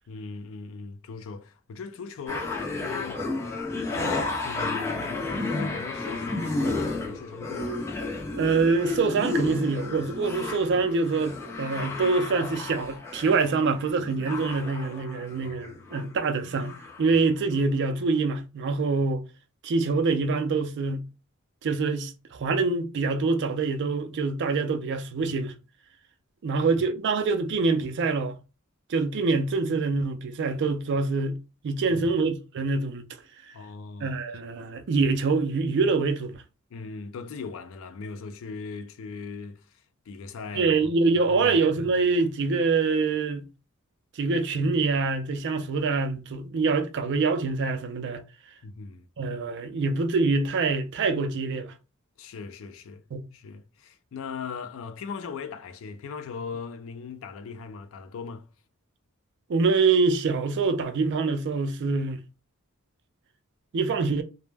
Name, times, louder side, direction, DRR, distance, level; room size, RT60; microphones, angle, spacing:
voice 1, 0.1-3.2 3.9-7.8 15.4-15.7 31.8-32.1 33.5-34.2 36.7-39.7 40.1-40.7 41.3-41.9 48.6-49.1 52.2-53.0 53.3-58.5, left 5 dB, 65° left, 0.4 m, -39 dB
sound 1, 2.3-16.0 16.3-17.1 17.6-17.7, left 3 dB, 10° left, 0.5 m, -32 dB
voice 2, 8.4-16.7 17.0-19.2 19.6-21.0 21.6-25.5 26.4-28.4 28.9-31.4 31.6-33.0 33.5-33.6 34.0-36.4 40.5-43.4 44.2-48.2 49.2-51.7 53.1-53.2 59.5-62.2 63.7-64.2, right 4 dB, 55° right, 0.4 m, -25 dB
2.1 x 2.0 x 3.2 m
head